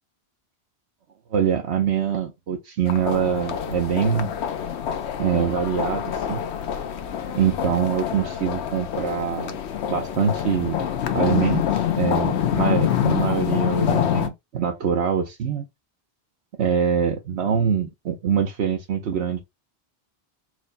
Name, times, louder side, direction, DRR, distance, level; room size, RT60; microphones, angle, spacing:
voice 1, 1.3-4.3 5.2-6.4 7.3-9.6 9.9-10.9 11.1-15.7 16.6-19.4, right 7 dB, 80° right, 1.1 m, -24 dB
sound 1, 2.9-14.3, left 9 dB, 85° left, 1.0 m, -26 dB
4.6 x 2.2 x 4.0 m
omnidirectional pair, 1.1 m